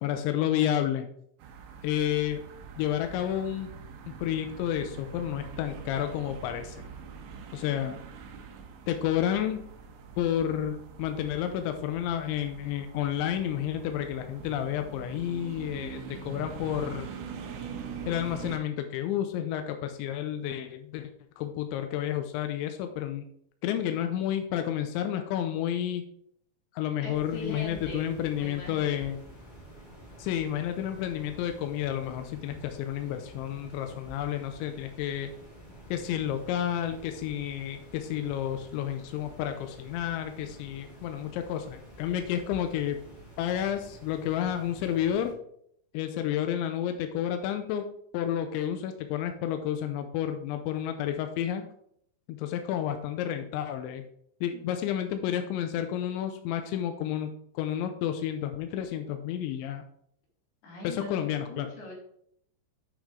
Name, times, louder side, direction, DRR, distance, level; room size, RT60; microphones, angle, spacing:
voice 1, 0.0-1.1 1.8-2.4 2.8-3.7 4.1-6.9 7.5-8.0 8.9-9.6 10.2-17.1 18.1-21.1 21.4-23.3 23.6-26.0 26.7-29.2 30.2-35.3 35.9-43.0 43.4-45.3 45.9-47.8 48.1-51.6 52.3-54.0 54.4-57.3 57.6-59.8 60.8-61.7, left 10 dB, 85° left, 7 dB, 2.6 m, -30 dB
sound 1, 1.4-18.6, right 6 dB, 75° right, 2.9 m, -44 dB
voice 2, 27.0-28.1 28.4-29.1 60.6-61.9, left 2 dB, 55° left, -3 dB, 4.1 m, -42 dB
sound 2, 27.1-45.3, equal, 30° left, 0.9 m, -49 dB
8.5 x 6.2 x 3.7 m, 0.69 s
omnidirectional pair, 5.9 m